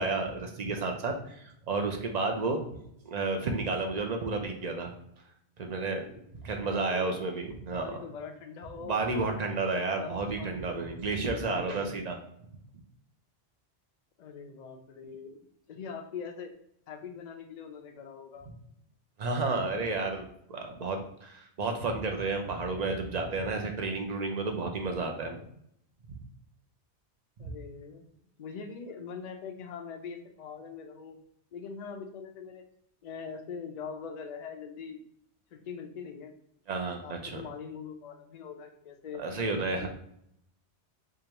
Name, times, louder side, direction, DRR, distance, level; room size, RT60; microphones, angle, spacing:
voice 1, 0.0-2.6 3.0-4.9 5.6-8.0 8.8-12.2 19.2-25.4 27.4-27.5 36.7-37.4 39.2-39.9, right 3 dB, 50° right, 3 dB, 0.6 m, -31 dB
voice 2, 6.6-7.2 7.7-9.2 9.8-10.7 11.5-12.1 14.2-16.5 16.9-18.5 25.1-25.5 27.4-28.0 28.4-31.2 31.5-32.7 33.0-35.0 35.5-36.3 37.0-39.9, left 6 dB, 55° left, 4 dB, 0.5 m, -43 dB
4.7 x 2.5 x 2.8 m, 0.73 s
omnidirectional pair, 1.1 m